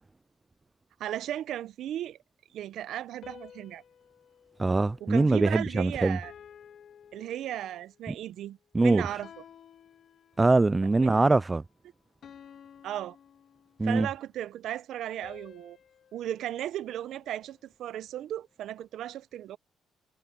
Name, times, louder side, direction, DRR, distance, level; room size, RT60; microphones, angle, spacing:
voice 1, 1.0-2.2 2.5-3.8 5.0-6.3 7.1-9.3 11.0-11.2 12.8-13.2 13.8-15.8 16.1-19.6, right 12 dB, 80° right, 0.7 m, -36 dB
sound 1, 3.2-5.7 6.2-8.0 9.2-10.8 12.2-14.1 15.2-17.6, left 8 dB, 60° left, 2.8 m, -53 dB
voice 2, 4.6-6.2 8.1-8.2 8.7-9.0 10.4-11.6 13.8-14.1, right 3 dB, 20° right, 0.3 m, -23 dB
cardioid pair, 90°, 0 cm